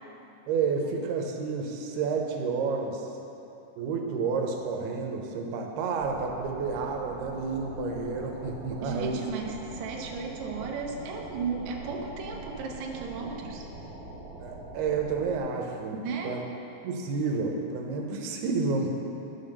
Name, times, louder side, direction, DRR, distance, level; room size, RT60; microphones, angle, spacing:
voice 1, 0.5-3.1 3.8-9.3 14.4-16.4 16.8-18.9, right 4 dB, 85° right, 2 dB, 2.9 m, -30 dB
sound 1, 6.0-15.4, right 1 dB, 20° right, 1.2 m, -43 dB
voice 2, 8.8-13.6 15.9-16.4, right 5 dB, 70° right, 0 dB, 1.8 m, -35 dB
11.5 x 5.8 x 6.6 m, 2.9 s
omnidirectional pair, 4.5 m